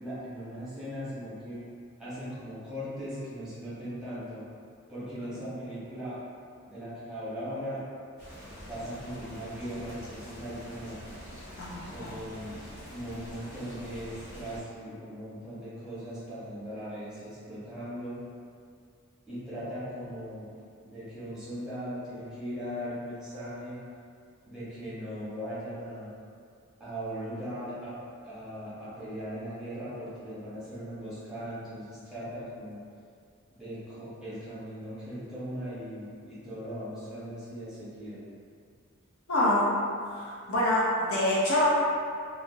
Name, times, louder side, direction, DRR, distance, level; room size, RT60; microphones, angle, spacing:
voice 1, 0.0-1.6 2.0-4.4 4.9-6.2 6.7-7.8 8.7-10.9 11.9-12.6 12.9-18.2 19.3-20.5 20.8-23.8 24.4-26.1 26.8-27.9 28.2-32.8 33.6-38.2, equal, 5° right, -13 dB, 0.9 m, -39 dB
sound 1, 8.2-14.6, equal, 60° left, 1.3 m, -45 dB
voice 2, 11.6-12.1 39.3-39.7 40.1-41.7, left 1 dB, 80° left, -8 dB, 0.7 m, -26 dB
2.5 x 2.0 x 2.6 m, 2.3 s
head